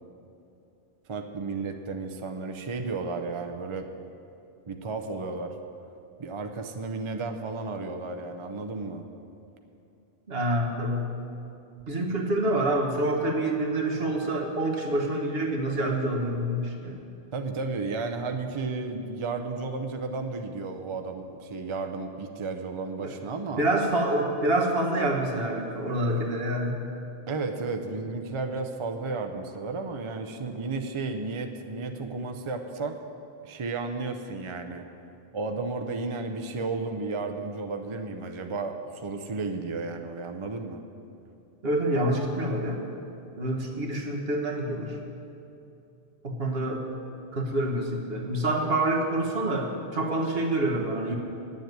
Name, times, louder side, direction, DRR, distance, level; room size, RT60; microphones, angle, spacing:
voice 1, 1.1-3.9 4.7-5.6 6.2-9.0 17.3-23.7 27.3-33.0 33.4-34.8 35.3-40.8, right 3 dB, 35° right, 5 dB, 0.6 m, -33 dB
voice 2, 10.3-11.1 11.9-17.0 23.0-23.1 23.6-26.8 41.6-42.8 43.3-45.0 46.2-46.8 47.3-51.2, right 1 dB, 70° right, 0 dB, 1.5 m, -27 dB
9.6 x 7.3 x 9.1 m, 2.7 s
omnidirectional pair, 1.1 m